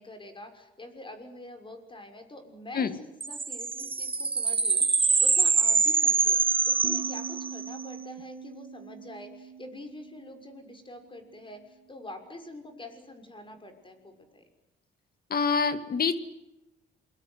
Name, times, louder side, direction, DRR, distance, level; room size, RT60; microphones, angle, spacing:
voice 1, 0.0-6.4 6.6-14.4, left 1 dB, 25° left, 6 dB, 6.3 m, -45 dB
sound 1, 3.2-7.8, right 4 dB, 25° right, 1.3 m, -25 dB
sound 2, 6.8-12.0, right 8 dB, 70° right, 2.3 m, -43 dB
voice 2, 15.3-16.1, left 5 dB, 50° left, 11 dB, 2.4 m, -26 dB
28.5 x 21.5 x 8.2 m, 0.90 s
cardioid pair, 90°, 20 cm